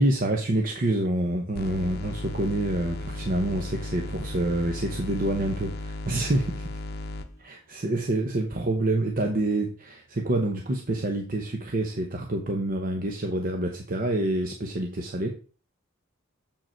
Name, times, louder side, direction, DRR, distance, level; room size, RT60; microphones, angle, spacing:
voice 1, 0.0-6.6 7.7-15.3, right 1 dB, 40° right, 2 dB, 0.9 m, -27 dB
sound 1, 1.5-7.3, left 2 dB, 50° left, 0.8 m, -35 dB
7.4 x 5.2 x 4.5 m, 0.39 s
head